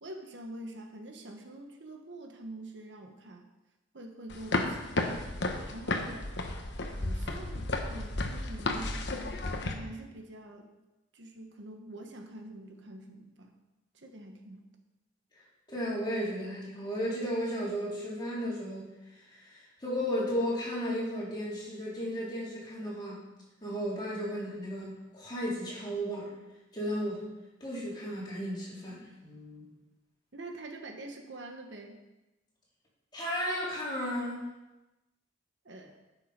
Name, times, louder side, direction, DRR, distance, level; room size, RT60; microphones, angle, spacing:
voice 1, 0.0-3.5 3.9-5.2 5.7-6.3 7.0-8.9 9.6-10.7 11.1-13.5 13.9-14.6 30.3-32.0 35.6-36.0, right 1 dB, 65° right, 4 dB, 1.2 m, -45 dB
sound 1, 4.3-9.7, left 2 dB, 65° left, 1.1 m, -33 dB
voice 2, 15.7-18.9 19.1-23.2 23.6-26.3 26.7-27.2 27.6-29.7 33.1-34.5, equal, 25° left, -7 dB, 3.6 m, -34 dB
12.5 x 6.6 x 5.2 m, 1.0 s
head